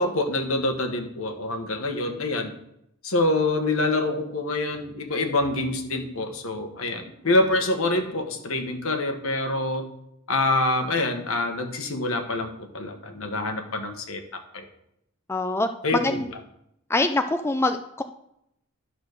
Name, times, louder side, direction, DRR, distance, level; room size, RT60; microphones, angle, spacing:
voice 1, 0.0-2.5 3.0-9.9 10.3-14.2 14.5-14.6 15.8-16.2, left 2 dB, 75° left, 5 dB, 1.4 m, -26 dB
voice 2, 15.3-16.3 16.9-18.0, left 2 dB, 10° left, 7 dB, 0.4 m, -25 dB
11.5 x 4.1 x 6.6 m, 0.78 s
head